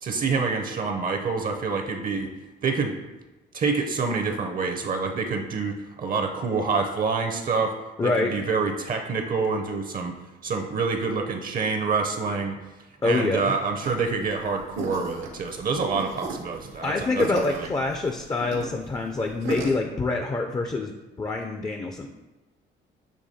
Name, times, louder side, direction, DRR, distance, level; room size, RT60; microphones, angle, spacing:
voice 1, 0.0-2.3 2.6-3.0 3.5-7.8 8.0-10.1 10.4-12.6 13.0-17.7, right 4 dB, 45° right, 4 dB, 0.5 m, -27 dB
voice 2, 8.0-8.3 13.0-13.5 16.8-20.9 21.2-22.1, left 3 dB, 20° left, 4 dB, 0.3 m, -26 dB
sound 1, 13.8-19.7, right 2 dB, 90° right, 0.8 m, -35 dB
6.5 x 3.0 x 2.7 m, 1.1 s
cardioid pair, 90°, 20 cm